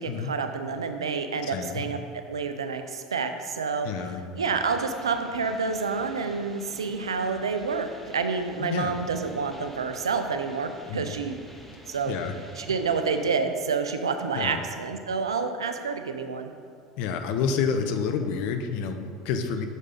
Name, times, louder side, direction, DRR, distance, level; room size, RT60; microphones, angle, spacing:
voice 1, 0.0-2.0 2.3-3.9 4.4-11.4 11.9-12.1 12.6-16.5, right 5 dB, 85° right, 7 dB, 0.5 m, -28 dB
voice 2, 1.4-1.9 3.8-4.2 8.6-9.0 10.9-11.1 12.1-12.3 14.3-14.6 17.0-19.7, left 6 dB, 60° left, 7 dB, 0.7 m, -29 dB
sound 1, 4.4-13.4, equal, 5° left, 1.1 m, -48 dB
6.3 x 5.3 x 5.5 m, 2.3 s
hypercardioid pair, 75°, 3 cm